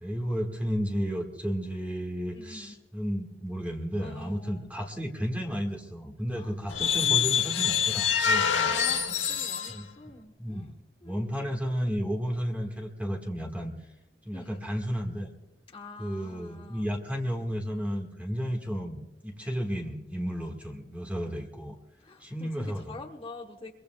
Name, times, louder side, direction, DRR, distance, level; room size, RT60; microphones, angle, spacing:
voice 1, 0.0-8.7 9.7-10.1 10.4-10.7 11.0-13.9 14.2-15.3 16.0-21.8 22.2-23.0, equal, 10° right, 0 dB, 1.7 m, -33 dB
voice 2, 2.3-2.7 4.0-4.7 6.3-7.4 8.6-10.7 11.0-11.5 14.3-14.6 15.7-16.9 22.0-23.7, left 2 dB, 30° left, 2 dB, 1.1 m, -46 dB
sound 1, 6.7-9.8, left 8 dB, 90° left, 1.4 m, -26 dB
23.5 x 23.0 x 2.3 m, 0.96 s
head